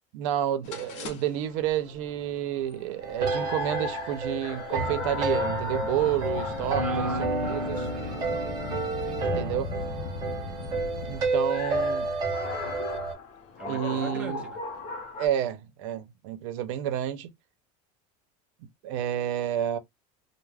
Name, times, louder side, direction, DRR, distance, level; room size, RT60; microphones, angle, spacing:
voice 1, 0.1-7.9 8.7-8.9 9.3-9.7 11.1-12.2 13.7-14.5 15.2-17.3 18.8-19.8, right 11 dB, 75° right, 0.5 m, -30 dB
sound 1, 0.6-15.3, left 4 dB, 45° left, 0.6 m, -39 dB
sound 2, 3.0-13.1, right 3 dB, 25° right, 0.7 m, -30 dB
sound 3, 4.7-11.2, left 6 dB, 85° left, 0.5 m, -38 dB
voice 2, 6.8-8.6 9.0-9.4 13.6-14.6, right 4 dB, 5° right, 0.3 m, -42 dB
2.3 x 2.0 x 3.2 m
cardioid pair, 170°, 16 cm